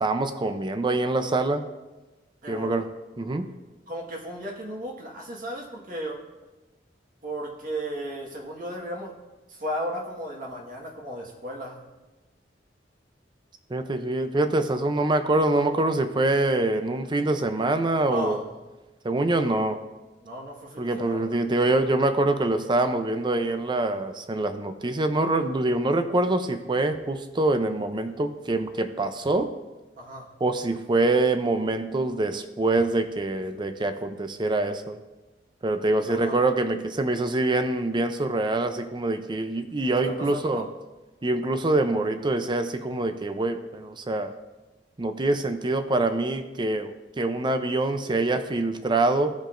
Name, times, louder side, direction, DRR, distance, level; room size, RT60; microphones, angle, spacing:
voice 1, 0.0-1.6 2.5-2.9 3.2-3.5 13.7-18.4 19.0-19.8 20.8-29.5 30.4-35.0 35.6-40.7 41.2-44.3 45.0-49.3, right 2 dB, 25° right, 9 dB, 0.5 m, -25 dB
voice 2, 2.4-2.7 3.9-6.2 7.2-9.1 9.5-11.8 18.0-18.4 20.2-21.4 30.0-30.3 36.1-36.4 40.0-40.7, equal, 50° right, -1 dB, 1.5 m, -35 dB
15.5 x 5.2 x 2.5 m, 1.1 s
head